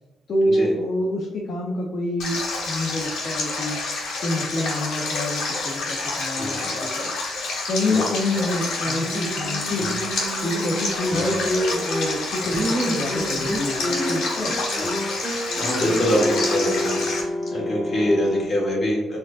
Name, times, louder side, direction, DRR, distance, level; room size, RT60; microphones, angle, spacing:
voice 1, 0.3-3.8 4.2-7.1 7.7-9.9 10.4-14.7, left 1 dB, 50° left, -3 dB, 0.6 m, -27 dB
Stream, 2.2-17.2, left 3 dB, 80° left, 1.1 m, -28 dB
voice 2, 6.3-6.8 8.0-8.1 9.7-9.9 11.0-11.1 14.7-14.9 15.5-19.2, equal, 35° left, -4 dB, 1.4 m, -25 dB
sound 1, 8.9-11.7 12.1-13.6, right 2 dB, 30° right, 0.6 m, -31 dB
sound 2, 11.1-12.3 12.6-18.4, equal, ahead, 1.4 m, -29 dB
4.2 x 2.6 x 2.4 m, 1.0 s
cardioid pair, 90°, 0 cm